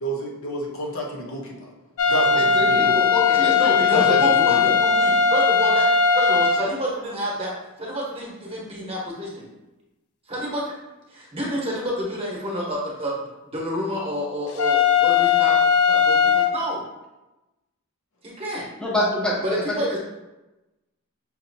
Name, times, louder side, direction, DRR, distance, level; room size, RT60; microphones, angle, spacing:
voice 1, 0.0-1.7 2.1-3.0 3.9-4.0 4.5-4.6, equal, 65° left, -1 dB, 0.8 m, -30 dB
sound 1, 2.0-6.6 14.6-16.5, left 6 dB, 85° left, 0.3 m, -18 dB
voice 2, 2.3-4.5 18.5-20.0, left 1 dB, 5° left, -4 dB, 0.7 m, -27 dB
voice 3, 3.3-5.9 6.1-7.5 7.8-9.5 10.3-10.7 11.1-15.5 15.9-16.8 18.2-18.6 19.4-20.0, equal, 25° right, -4 dB, 1.0 m, -28 dB
5.5 x 2.7 x 2.6 m, 1.0 s
head